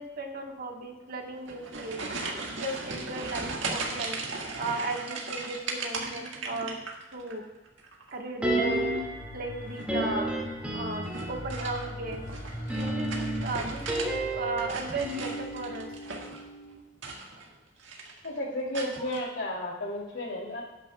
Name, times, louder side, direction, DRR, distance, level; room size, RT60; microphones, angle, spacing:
voice 1, 0.0-2.0 2.5-4.2 4.6-6.8 7.1-7.4 8.1-8.8 9.3-10.3 10.7-12.3 12.8-15.9 19.0-19.1, right 2 dB, 50° right, 3 dB, 1.3 m, -36 dB
sound 1, 1.3-7.4 7.7-8.2 9.6-10.0 11.0-14.1 14.4-16.5 16.9-17.5 17.8-18.3 18.7-19.2, right 3 dB, 80° right, 1.7 m, -37 dB
sound 2, 8.4-9.2 9.9-11.5 12.5-16.7 17.0-17.1, right 1 dB, 5° right, 2.0 m, -31 dB
sound 3, 8.6-16.0, left 1 dB, 45° left, 2.8 m, -42 dB
voice 2, 18.2-20.6, left 1 dB, 65° left, -2 dB, 2.8 m, -33 dB
18.0 x 9.5 x 2.3 m, 1.0 s
head